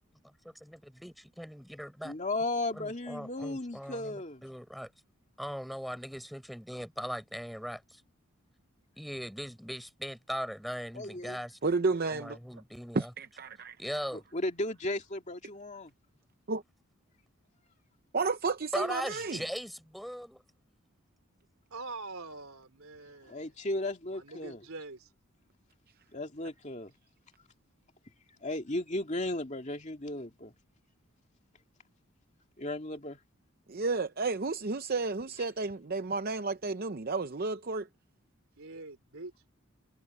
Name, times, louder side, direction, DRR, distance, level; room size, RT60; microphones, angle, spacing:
voice 1, 0.2-2.1 2.7-4.9 5.4-8.0 9.0-11.6 12.1-13.1 13.8-14.2 18.7-20.4, equal, ahead, 4.6 m, -39 dB
voice 2, 2.0-4.4 10.9-11.4 14.3-15.9 23.2-24.6 26.1-26.9 28.4-30.5 32.6-33.2, left 2 dB, 35° left, 2.5 m, -35 dB
voice 3, 11.6-12.4 12.9-13.8 16.5-16.6 18.1-19.4 33.7-37.9, right 3 dB, 45° right, 0.7 m, -31 dB
voice 4, 21.7-23.5 24.1-25.1 38.6-39.3, right 3 dB, 75° right, 3.5 m, -44 dB
head